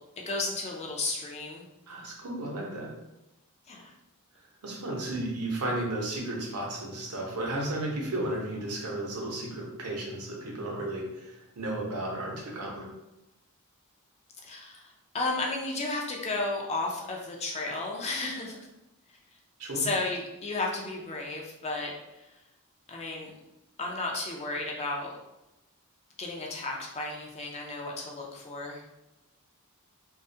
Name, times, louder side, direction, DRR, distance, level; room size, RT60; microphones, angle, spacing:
voice 1, 0.3-1.7 3.7-3.9 14.4-18.6 19.7-21.9 22.9-23.4 23.8-25.1 26.2-28.8, left 2 dB, 30° left, -1 dB, 0.3 m, -33 dB
voice 2, 1.9-2.9 4.6-12.9 19.6-19.9, right 1 dB, 80° right, -2 dB, 0.7 m, -34 dB
2.3 x 2.0 x 2.6 m, 0.95 s
head